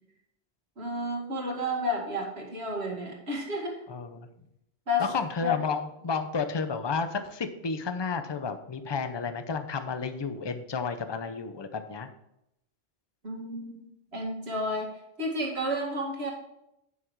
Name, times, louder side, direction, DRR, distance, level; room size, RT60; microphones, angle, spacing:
voice 1, 0.8-3.8 4.9-5.1 5.4-5.5 13.2-13.8 14.1-14.9 15.2-16.3, left 1 dB, 75° right, -1 dB, 2.4 m, -31 dB
voice 2, 3.9-4.3 5.0-12.1, left 5 dB, 30° left, 9 dB, 0.6 m, -32 dB
9.4 x 5.9 x 4.7 m, 0.83 s
omnidirectional pair, 1.1 m